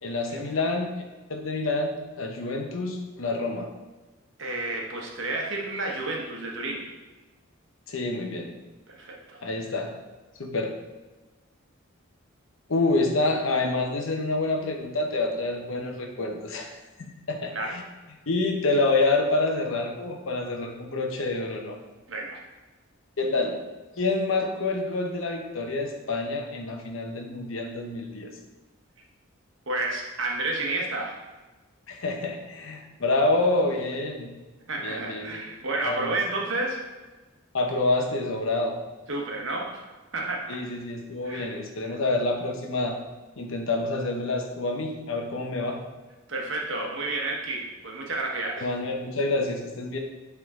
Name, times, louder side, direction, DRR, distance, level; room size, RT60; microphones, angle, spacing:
voice 1, 0.0-0.9 1.3-3.7 7.9-8.5 9.4-9.9 10.4-10.7 12.7-17.8 18.3-21.8 23.2-23.6 24.0-28.3 31.9-34.3 34.8-35.4 35.8-36.2 37.5-38.8 40.5-43.0 43.4-45.8 48.6-50.0, left 2 dB, 70° left, 2 dB, 0.9 m, -27 dB
voice 2, 4.4-6.9 8.9-9.4 17.5-17.8 22.1-22.4 29.7-31.2 34.7-36.8 39.1-39.8 40.1-40.6 41.2-42.0 46.3-48.7, right 2 dB, 60° right, -1 dB, 1.2 m, -31 dB
8.2 x 3.7 x 3.7 m, 1.2 s
head